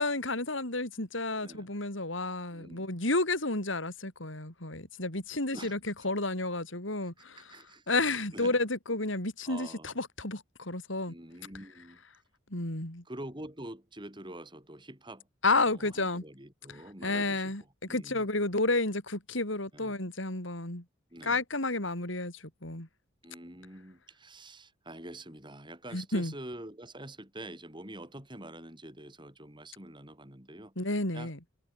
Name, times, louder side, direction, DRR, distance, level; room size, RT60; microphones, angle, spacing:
voice 1, 0.0-7.4 7.9-11.1 12.5-13.0 15.4-16.2 17.0-17.6 17.9-20.8 21.2-22.9 25.9-26.3 30.8-31.4, left 2 dB, 65° left, 4.7 m, -31 dB
voice 2, 2.5-2.9 5.5-5.8 7.0-7.9 8.3-8.6 9.4-10.0 11.1-12.0 13.1-15.3 15.6-18.3 19.7-20.0 21.1-21.4 23.2-30.7 31.1-31.3, right 1 dB, 25° right, 7.1 m, -46 dB
head